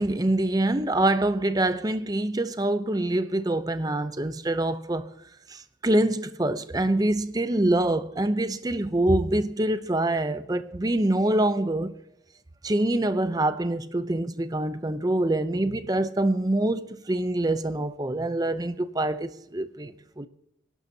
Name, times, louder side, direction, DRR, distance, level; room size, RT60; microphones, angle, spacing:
voice 1, 0.0-5.1 5.5-11.9 12.6-20.3, right 1 dB, 20° right, 0.6 m, -25 dB
26.5 x 12.0 x 2.8 m
head